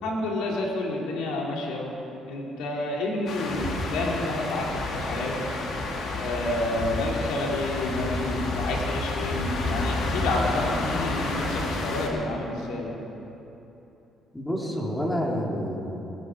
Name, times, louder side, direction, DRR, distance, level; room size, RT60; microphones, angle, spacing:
voice 1, 0.0-1.9 2.3-5.5 6.2-13.0, left 2 dB, 85° left, -2 dB, 3.1 m, -29 dB
sound 1, 3.3-12.1, left 2 dB, 70° left, 2.3 m, -30 dB
voice 2, 14.3-15.9, equal, 10° left, -2 dB, 3.1 m, -28 dB
21.0 x 10.0 x 4.7 m, 2.9 s
supercardioid pair, 75°, 0 cm